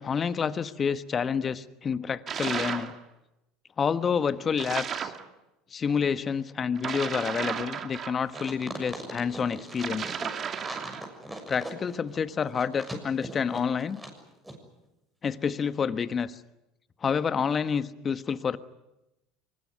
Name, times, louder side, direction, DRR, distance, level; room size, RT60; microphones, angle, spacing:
voice 1, 0.0-2.9 3.8-5.1 5.7-10.2 11.5-14.0 15.2-16.4 17.0-18.6, left 6 dB, 35° left, 12 dB, 1.3 m, -28 dB
sound 1, 2.3-3.0 4.6-5.2 6.8-8.5 9.7-11.1, right 7 dB, 40° right, 2.4 m, -34 dB
sound 2, 8.3-14.2 14.4-14.5, right 1 dB, 10° right, 6.7 m, -40 dB
23.5 x 20.5 x 9.6 m, 0.94 s
hypercardioid pair, 85°, 0 cm